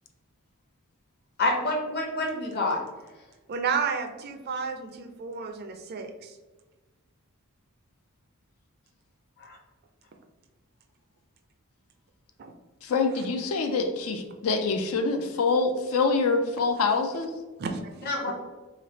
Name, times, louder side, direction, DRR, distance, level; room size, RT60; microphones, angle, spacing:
voice 1, 1.4-2.8 9.4-9.6 18.1-18.3, left 2 dB, 50° left, 0 dB, 0.9 m, -27 dB
voice 2, 3.5-6.4 12.4-12.5 17.6-17.9, right 5 dB, 45° right, 6 dB, 0.4 m, -31 dB
voice 3, 12.8-17.3, left 4 dB, 70° left, 5 dB, 0.4 m, -25 dB
3.2 x 2.4 x 3.9 m, 1.2 s
head